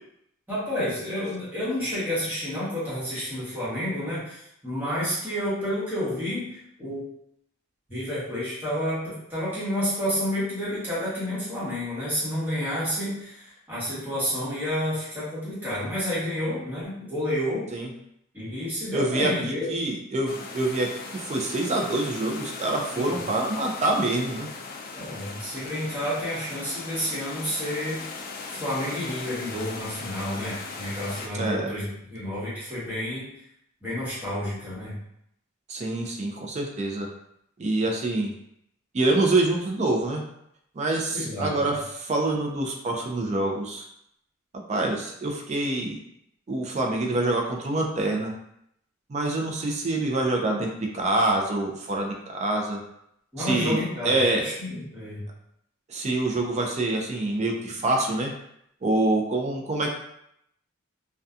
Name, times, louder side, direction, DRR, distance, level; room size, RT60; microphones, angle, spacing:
voice 1, 0.5-7.0 7.9-17.6 18.3-19.7 22.9-23.3 24.9-28.0 28.5-33.3 33.8-34.9 41.1-41.8 53.3-55.2, equal, 10° right, -11 dB, 1.1 m, -30 dB
voice 2, 18.9-24.5 31.3-31.7 35.7-37.1 37.6-38.3 38.9-40.2 40.8-43.9 44.7-46.0 46.5-48.3 49.1-50.7 50.9-52.8 53.4-54.4 55.9-58.3 58.8-60.0, right 2 dB, 35° right, 1 dB, 0.4 m, -26 dB
sound 1, 20.3-31.3, left 4 dB, 45° left, 0.3 m, -38 dB
2.6 x 2.2 x 2.3 m, 0.76 s
head